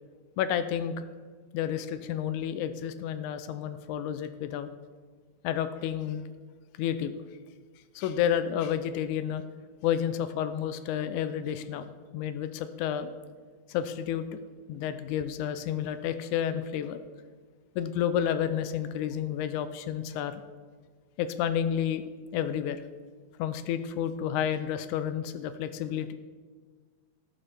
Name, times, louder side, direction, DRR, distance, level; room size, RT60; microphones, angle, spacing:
voice 1, 0.4-1.0 1.5-4.7 5.4-6.2 6.8-7.1 8.0-9.4 9.8-13.1 13.7-14.4 14.7-17.0 17.8-20.4 21.2-22.0 22.3-22.8 23.4-26.1, left 9 dB, 80° left, 11 dB, 1.8 m, -30 dB
14.0 x 11.5 x 3.4 m, 1.5 s
omnidirectional pair, 3.8 m